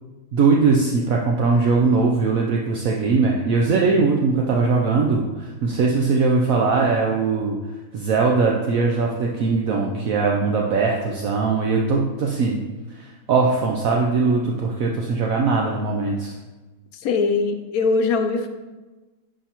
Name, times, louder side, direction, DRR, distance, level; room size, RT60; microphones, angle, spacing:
voice 1, 0.3-7.6 7.9-12.6 12.9-16.3, right 4 dB, 65° right, 0 dB, 1.0 m, -20 dB
voice 2, 16.9-18.5, left 4 dB, 75° left, 7 dB, 1.0 m, -21 dB
10.5 x 4.8 x 2.9 m, 1.2 s
omnidirectional pair, 1.6 m